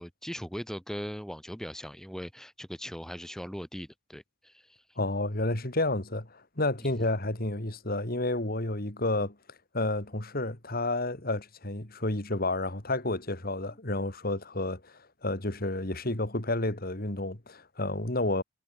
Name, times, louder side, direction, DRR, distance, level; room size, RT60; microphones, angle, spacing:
voice 1, 0.0-4.8 6.8-6.9, equal, ahead, 2.6 m, -40 dB
voice 2, 5.0-9.4 9.7-18.4, left 2 dB, 50° left, 3.1 m, -30 dB
head